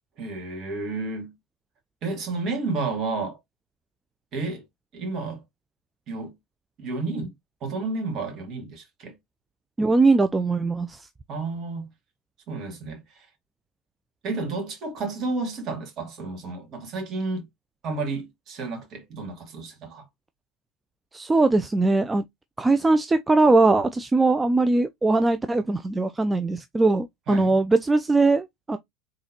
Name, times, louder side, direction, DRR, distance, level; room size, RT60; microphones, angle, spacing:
voice 1, 0.2-1.3 2.0-3.4 4.3-4.6 4.9-5.4 6.1-6.3 6.8-7.3 7.6-9.2 11.3-11.9 12.5-13.0 14.2-17.5 17.8-20.0 27.3-27.6, right 3 dB, 45° right, 2.3 m, -31 dB
voice 2, 9.8-11.0 21.1-22.2 22.6-28.8, right 3 dB, 15° right, 0.4 m, -21 dB
3.9 x 3.8 x 2.9 m
figure-of-eight pair, 75°, 0 cm